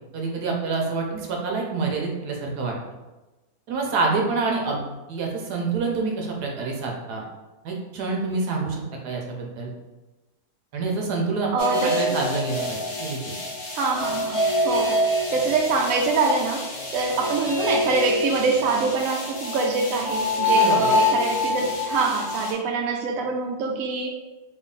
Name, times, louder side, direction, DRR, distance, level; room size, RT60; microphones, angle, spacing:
voice 1, 0.1-2.7 3.7-7.2 7.6-9.7 10.7-11.5 11.8-13.3 20.5-20.9, right 4 dB, 85° right, 0 dB, 1.3 m, -27 dB
voice 2, 11.5-12.1 13.8-16.7 16.9-24.1, right 4 dB, 70° right, 1 dB, 0.9 m, -24 dB
sound 1, 11.6-22.5, left 1 dB, 55° left, 0.8 m, -26 dB
3.2 x 2.3 x 3.7 m, 1.1 s
omnidirectional pair, 1.7 m